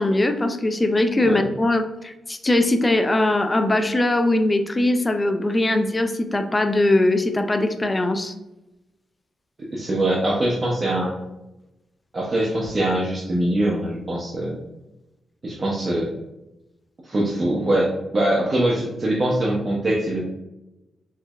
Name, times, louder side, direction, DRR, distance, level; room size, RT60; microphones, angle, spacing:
voice 1, 0.0-8.3, left 1 dB, 25° left, 7 dB, 0.4 m, -21 dB
voice 2, 9.6-11.1 12.1-14.6 15.4-16.1 17.0-20.2, right 1 dB, 40° right, -4 dB, 0.7 m, -23 dB
4.4 x 2.1 x 2.3 m, 0.95 s
cardioid pair, 75°, 0 cm